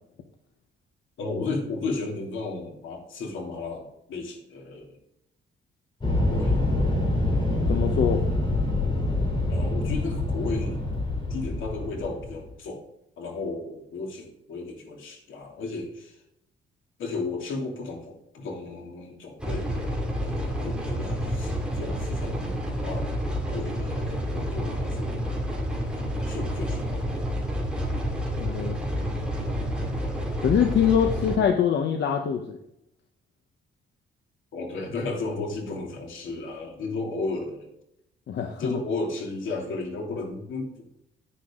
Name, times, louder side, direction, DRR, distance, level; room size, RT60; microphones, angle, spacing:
voice 1, 1.2-5.0 6.2-6.6 9.5-10.8 11.3-12.9 13.2-16.2 17.0-23.1 23.5-25.2 26.2-27.2 34.5-37.7 38.6-40.9, left 3 dB, 85° left, 1 dB, 3.0 m, -34 dB
sound 1, 6.0-12.5, left 2 dB, 25° left, 3.8 m, -25 dB
voice 2, 7.7-8.2 28.4-29.2 30.4-32.6 38.3-38.8, left 8 dB, 65° left, 4 dB, 1.1 m, -24 dB
sound 2, 19.4-31.4, equal, 5° right, 2.4 m, -29 dB
10.0 x 9.8 x 3.8 m, 0.77 s
cardioid pair, 165°, 20 cm